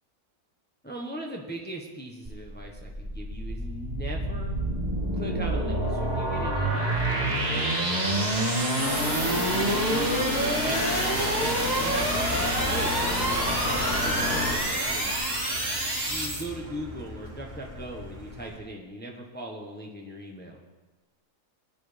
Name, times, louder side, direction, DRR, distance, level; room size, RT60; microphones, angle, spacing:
voice 1, 0.8-4.5 5.1-8.5 9.2-15.2 16.0-20.6, right 1 dB, 5° left, 0 dB, 1.2 m, -39 dB
sound 1, 2.3-16.4, right 1 dB, 25° right, 2.1 m, -27 dB
sound 2, 8.8-14.6, left 2 dB, 75° left, 1.9 m, -31 dB
Car, 12.3-18.6, equal, 85° right, 2.9 m, -42 dB
19.0 x 10.5 x 3.5 m, 1.2 s
omnidirectional pair, 1.6 m